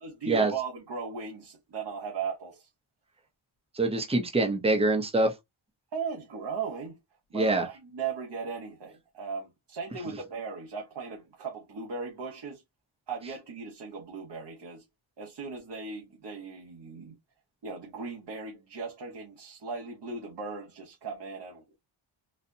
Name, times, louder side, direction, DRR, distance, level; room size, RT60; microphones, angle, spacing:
voice 1, 0.0-2.7 5.9-7.0 7.3-12.6 13.1-14.8 15.2-17.2 17.6-21.8, right 5 dB, 55° right, 1.1 m, -37 dB
voice 2, 3.7-5.3 7.3-7.6, right 2 dB, 10° right, 0.9 m, -25 dB
4.1 x 2.4 x 2.6 m
wide cardioid pair, 100°, 49 cm